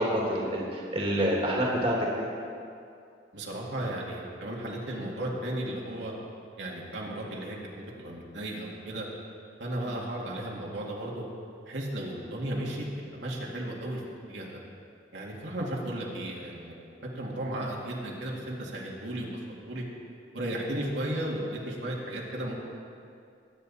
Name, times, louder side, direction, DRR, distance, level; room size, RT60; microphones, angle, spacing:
voice 1, 0.0-2.2, equal, 30° right, -3 dB, 2.1 m, -27 dB
voice 2, 3.3-6.1 6.6-9.1 9.6-11.2 11.6-12.9 13.1-14.0 14.3-14.6 15.1-16.7 17.0-19.8 20.3-22.5, right 1 dB, 75° right, -4 dB, 2.3 m, -35 dB
21.0 x 9.3 x 4.2 m, 2.4 s
head